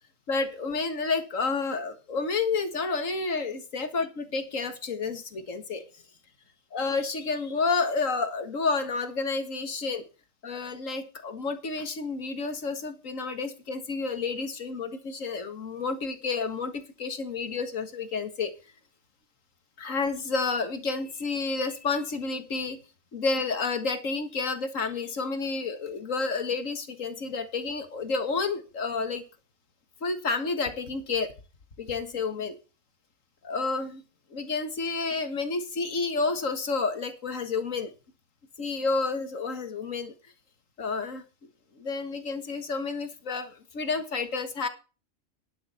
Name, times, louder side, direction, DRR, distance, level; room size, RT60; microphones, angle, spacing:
voice 1, 0.3-4.1 4.3-5.8 6.7-10.0 10.4-18.5 19.8-22.8 23.1-29.2 30.0-31.3 31.8-32.6 33.4-34.0 34.3-37.9 38.6-40.1 40.8-41.2 41.8-44.7, left 4 dB, 90° left, 8 dB, 2.1 m, -30 dB
11.0 x 11.0 x 4.4 m, 0.33 s
omnidirectional pair, 1.3 m